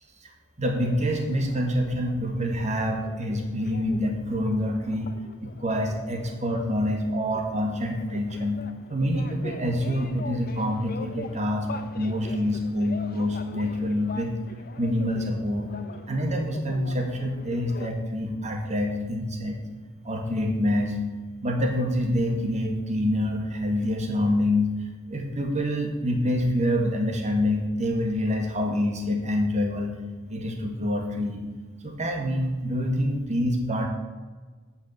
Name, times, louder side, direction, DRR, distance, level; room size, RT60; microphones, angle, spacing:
voice 1, 0.6-5.1 5.4-8.6 8.9-14.3 14.8-15.7 16.1-19.6 20.0-21.0 21.4-24.7 25.1-30.0 30.3-31.4 31.8-33.9, left 1 dB, 35° right, 3 dB, 1.7 m, -26 dB
sound 1, 0.8-17.9, left 3 dB, 50° left, 0.8 m, -43 dB
9.3 x 5.8 x 7.9 m, 1.4 s
head